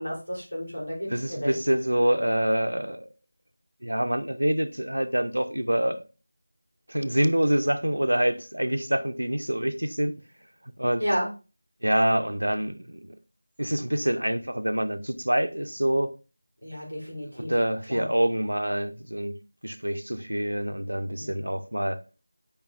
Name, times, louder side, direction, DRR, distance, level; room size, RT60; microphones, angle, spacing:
voice 1, 0.0-1.5 11.0-11.3 16.6-17.5 17.9-18.1 21.2-21.3, equal, 90° left, 4.2 m, -31 dB
voice 2, 1.1-3.1 3.8-6.0 6.9-10.1 10.8-11.1 11.8-13.1 13.6-16.2 17.3-19.4 19.6-22.0, right 1 dB, 80° right, 0.7 m, -26 dB
8.9 x 5.3 x 2.6 m
figure-of-eight pair, 170°, 0 cm